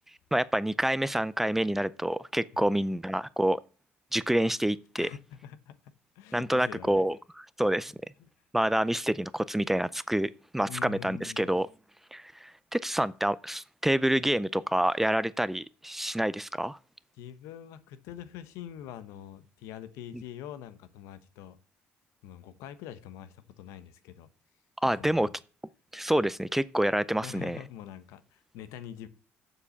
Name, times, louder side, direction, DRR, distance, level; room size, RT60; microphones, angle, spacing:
voice 1, 0.3-3.6 4.1-5.1 6.3-7.9 8.5-11.7 12.1-16.8 24.8-25.3 25.9-27.6, right 1 dB, 5° right, 0.4 m, -27 dB
voice 2, 5.0-5.8 6.1-7.1 8.2-8.3 10.7-11.6 17.1-21.6 22.2-24.3 24.9-25.3 27.2-29.1, left 10 dB, 85° left, 1.0 m, -44 dB
7.2 x 6.9 x 7.1 m
cardioid pair, 100°, 5 cm